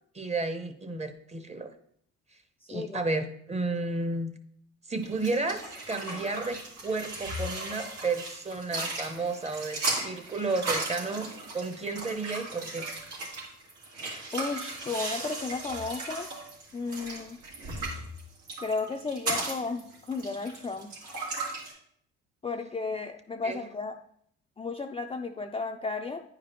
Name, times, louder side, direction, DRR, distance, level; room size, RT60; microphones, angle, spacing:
voice 1, 0.1-1.7 2.7-4.3 4.9-5.6 5.9-11.3 11.5-12.9 23.4-23.6, right 3 dB, 20° right, 8 dB, 0.8 m, -32 dB
voice 2, 2.6-3.0 14.3-16.3 16.7-17.4 18.6-20.9 22.4-24.0 24.6-26.2, left 4 dB, 20° left, 4 dB, 0.4 m, -34 dB
sound 1, 5.0-21.7, right 2 dB, 80° right, 2.4 m, -36 dB
9.4 x 5.0 x 3.0 m, 0.67 s
cardioid pair, 90°, 30 cm